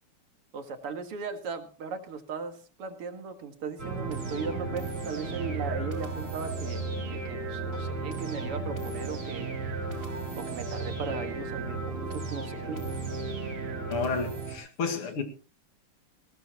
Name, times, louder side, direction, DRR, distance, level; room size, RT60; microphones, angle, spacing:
voice 1, 0.5-6.8 7.1-9.5 10.4-12.8, right 5 dB, 90° right, 2.8 m, -37 dB
intro to a space series, 3.8-14.6, right 3 dB, 60° right, 4.5 m, -34 dB
voice 2, 13.9-15.2, left 4 dB, 80° left, 2.9 m, -31 dB
19.5 x 17.5 x 3.0 m
omnidirectional pair, 2.4 m